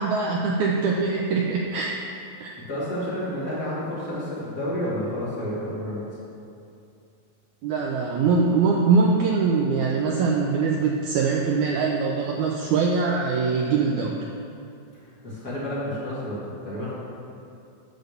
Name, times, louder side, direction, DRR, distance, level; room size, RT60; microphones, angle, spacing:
voice 1, 0.0-1.9 2.4-2.5 7.6-14.1, right 4 dB, 85° right, -1 dB, 1.7 m, -22 dB
voice 2, 2.7-6.0 15.0-16.9, equal, 30° left, -10 dB, 2.5 m, -30 dB
12.0 x 4.1 x 6.7 m, 2.6 s
omnidirectional pair, 4.2 m